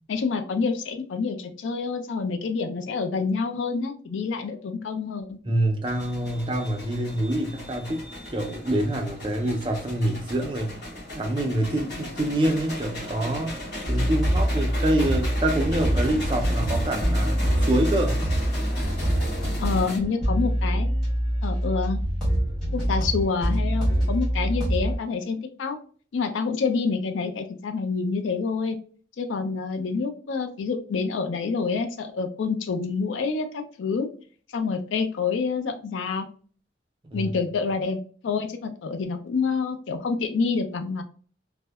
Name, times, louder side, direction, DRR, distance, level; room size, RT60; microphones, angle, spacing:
voice 1, 0.1-5.4 19.6-20.9 21.4-22.0 22.7-25.8 26.1-28.8 29.2-34.1 34.5-36.3 37.1-38.0 38.2-41.0, left 4 dB, 85° left, 6 dB, 0.4 m, -27 dB
voice 2, 5.5-10.7 11.1-13.5 13.9-18.2 37.1-37.3, right 1 dB, 25° right, 3 dB, 0.4 m, -26 dB
sound 1, 5.9-20.0, left 1 dB, 60° left, 1.2 m, -36 dB
sound 2, 13.8-25.0, equal, 5° left, 1.0 m, -25 dB
2.6 x 2.1 x 2.2 m, 0.43 s
head